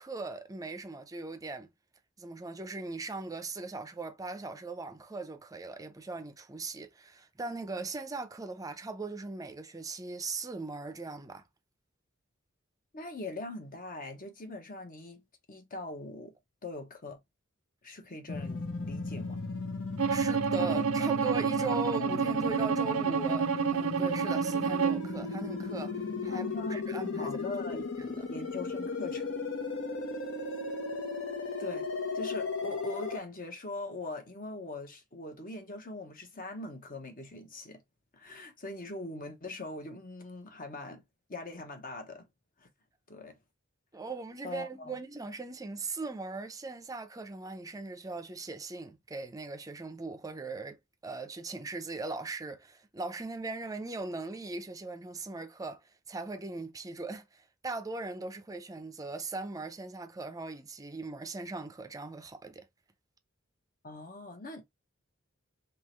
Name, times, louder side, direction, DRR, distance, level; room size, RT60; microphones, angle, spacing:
voice 1, 0.0-1.7 2.2-11.4 20.1-26.4 26.7-27.4 27.7-28.3 43.9-55.8 56.1-62.7, right 3 dB, 15° right, 0.6 m, -39 dB
voice 2, 12.9-15.2 15.5-16.3 16.6-17.2 17.8-19.4 26.3-26.8 27.1-27.8 28.3-29.2 31.6-31.9 32.1-37.8 38.1-41.0 41.3-42.3 42.6-42.7 43.1-43.4 44.4-45.0 63.8-64.6, left 2 dB, 45° left, 1.0 m, -41 dB
sound 1, 18.3-33.2, left 3 dB, 65° left, 1.0 m, -36 dB
Bowed string instrument, 20.0-25.1, right 6 dB, 75° right, 0.4 m, -29 dB
3.7 x 2.9 x 3.0 m
head